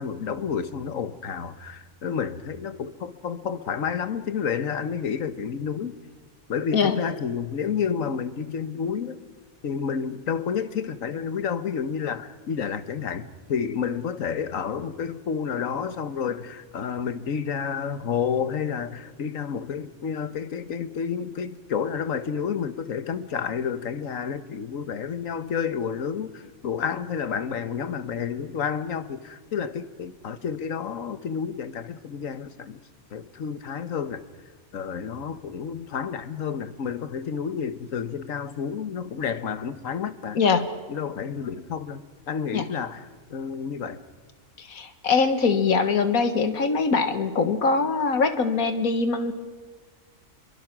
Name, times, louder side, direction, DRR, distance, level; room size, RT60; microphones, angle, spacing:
voice 1, 0.0-5.9 6.5-9.2 9.6-32.8 33.1-34.2 34.7-40.4 40.9-44.0, left 7 dB, 70° left, 1.5 m, -30 dB
voice 2, 40.4-40.7 42.5-42.7 44.6-49.3, left 4 dB, 85° left, 1.9 m, -22 dB
28.0 x 23.5 x 6.1 m
omnidirectional pair, 1.4 m